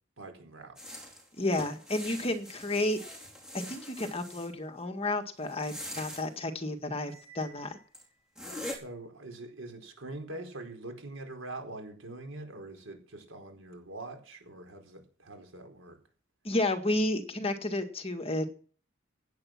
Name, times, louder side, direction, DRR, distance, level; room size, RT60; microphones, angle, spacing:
voice 1, 0.2-1.0 8.6-16.0, right 2 dB, 90° right, 4 dB, 4.5 m, -44 dB
sound 1, 0.8-4.5 5.5-6.2 7.4-7.5 7.9-8.0 8.4-8.8, left 1 dB, 5° right, 4.3 m, -43 dB
voice 2, 1.4-3.0 3.5-7.8 16.4-18.5, left 1 dB, 30° left, 6 dB, 1.9 m, -31 dB
Cymbal, 7.0-8.4, right 4 dB, 35° right, 5.9 m, -57 dB
16.0 x 9.7 x 6.0 m, 0.41 s
head